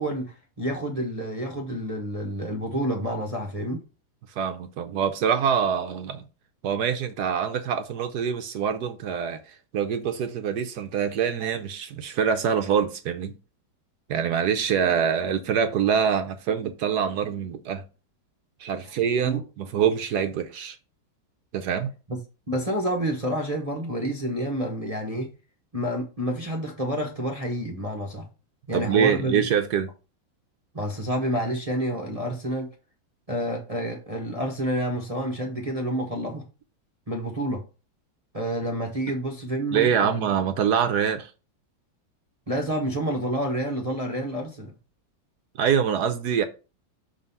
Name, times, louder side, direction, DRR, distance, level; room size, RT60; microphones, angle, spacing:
voice 1, 0.0-3.8 19.2-19.4 22.1-22.2 22.5-25.3 25.7-28.3 28.7-29.4 30.7-32.7 33.3-36.5 37.1-37.6 38.3-40.2 42.5-44.7, right 1 dB, 30° right, 0.7 m, -29 dB
voice 2, 4.4-6.3 6.6-13.4 14.1-17.8 18.6-20.8 21.5-21.9 28.7-29.9 39.7-41.3 45.6-46.4, right 7 dB, 65° right, 1.0 m, -25 dB
6.2 x 3.9 x 5.5 m
omnidirectional pair, 2.2 m